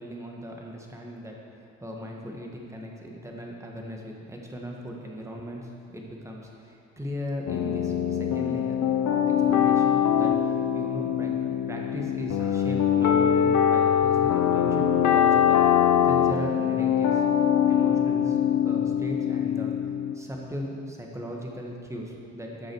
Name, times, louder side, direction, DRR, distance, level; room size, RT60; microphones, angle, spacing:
voice 1, 0.0-8.8 9.1-9.2 9.5-11.3 11.7-15.6 16.0-17.2 17.6-19.7 20.1-22.7, equal, 10° right, -1 dB, 1.7 m, -37 dB
sound 1, 7.5-20.1, left 9 dB, 70° left, 0.8 m, -23 dB
14.5 x 6.3 x 4.7 m, 2.6 s
cardioid pair, 90°, 30 cm